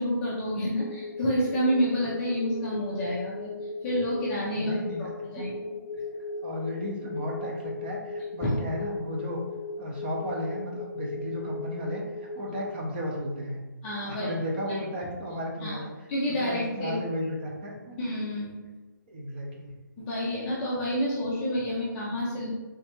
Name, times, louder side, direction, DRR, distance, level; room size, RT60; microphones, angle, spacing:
voice 1, 0.0-3.5 3.8-4.7 5.0-5.5 8.4-8.5 13.8-14.4 15.6-15.8 16.1-17.0 18.0-18.6 20.0-22.5, equal, 10° left, -7 dB, 0.5 m, -29 dB
sound 1, 0.7-12.7, left 3 dB, 80° left, 0.4 m, -38 dB
voice 2, 4.5-5.1 5.3-5.6 6.4-9.4 9.8-13.6 14.1-15.9 16.4-18.0 19.1-19.7, left 1 dB, 30° right, -1 dB, 0.7 m, -34 dB
3.5 x 3.0 x 2.8 m, 1.2 s
hypercardioid pair, 165°, 11 cm